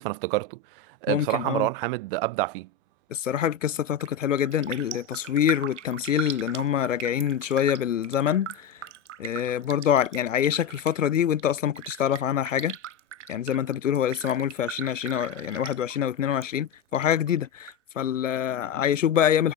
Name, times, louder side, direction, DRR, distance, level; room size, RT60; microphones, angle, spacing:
voice 1, 0.0-2.7, right 22 dB, 40° right, 2.6 m, -28 dB
voice 2, 1.1-1.7 3.1-8.7 9.2-12.8 13.3-19.5, left 10 dB, 60° left, 1.8 m, -25 dB
Raindrop, 3.9-4.1 4.4-16.5 16.7-17.7 18.1-18.2, right 11 dB, 55° right, 7.5 m, -40 dB
figure-of-eight pair, 115°, 42 cm